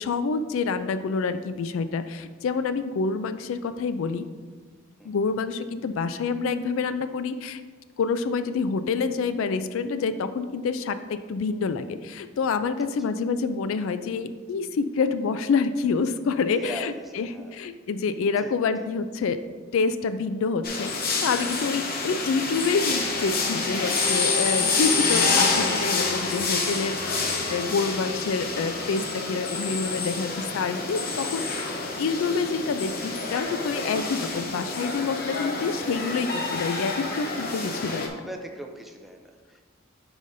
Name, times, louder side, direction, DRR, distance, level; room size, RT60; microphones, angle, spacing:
voice 1, 0.0-4.2 5.0-7.6 8.0-19.4 19.7-27.1 27.5-38.2, left 4 dB, 70° left, 11 dB, 0.3 m, -27 dB
voice 2, 16.5-17.5 18.4-18.5 38.3-39.6, equal, ahead, 2 dB, 0.4 m, -39 dB
sound 1, 20.6-38.1, left 3 dB, 45° left, 0.8 m, -27 dB
9.3 x 4.9 x 2.6 m, 1.5 s
head